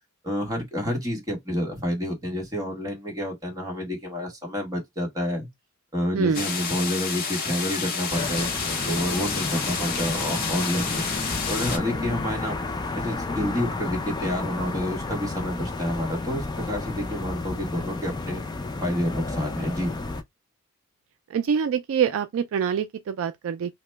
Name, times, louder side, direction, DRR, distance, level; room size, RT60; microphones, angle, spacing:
voice 1, 0.2-5.5 5.9-11.1 11.5-12.6 12.9-18.4 18.8-19.9, equal, 15° right, 1.4 m, -29 dB
voice 2, 6.1-6.5 21.3-23.7, right 7 dB, 65° right, 0.3 m, -25 dB
sound 1, 6.3-11.8, left 5 dB, 40° left, 0.8 m, -30 dB
sound 2, 8.1-20.2, left 3 dB, 20° left, 0.4 m, -32 dB
2.9 x 2.1 x 3.2 m
head